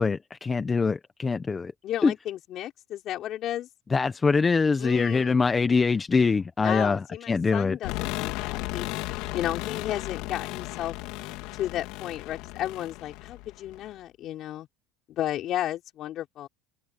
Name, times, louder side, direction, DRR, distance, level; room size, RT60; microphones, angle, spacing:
voice 1, 0.0-1.7 2.0-2.1 3.9-7.8, left 4 dB, 20° left, 0.9 m, -24 dB
voice 2, 1.8-3.7 4.8-5.4 6.6-8.9 9.3-11.0 11.5-14.7 15.1-16.5, left 12 dB, 50° left, 5.4 m, -33 dB
sound 1, 7.8-13.9, left 20 dB, 65° left, 3.4 m, -35 dB
supercardioid pair, 110°, 0 cm